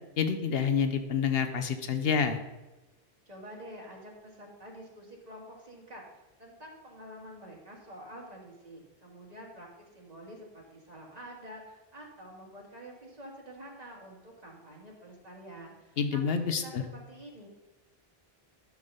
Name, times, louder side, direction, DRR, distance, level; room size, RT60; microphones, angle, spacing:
voice 1, 0.2-2.4 16.0-16.8, left 6 dB, 70° left, 8 dB, 0.9 m, -28 dB
voice 2, 3.3-17.5, equal, 40° right, -1 dB, 1.8 m, -48 dB
11.0 x 3.6 x 6.6 m, 1.1 s
omnidirectional pair, 1.0 m